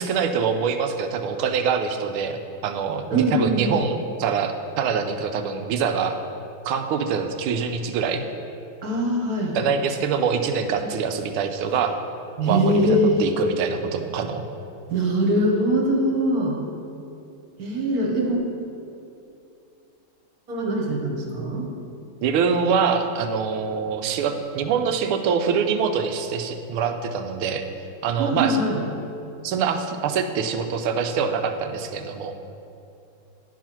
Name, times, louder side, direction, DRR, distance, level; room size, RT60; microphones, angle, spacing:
voice 1, 0.0-6.2 6.6-8.2 9.5-12.0 12.5-14.4 22.2-27.6 28.0-28.6 29.4-32.3, right 6 dB, 85° right, 7 dB, 1.5 m, -24 dB
voice 2, 3.1-3.8 8.8-9.6 12.4-13.2 14.9-16.6 17.6-18.4 20.5-21.7 28.2-28.8, right 1 dB, 50° right, 0 dB, 1.5 m, -22 dB
10.5 x 4.7 x 5.9 m, 2.7 s
omnidirectional pair, 2.3 m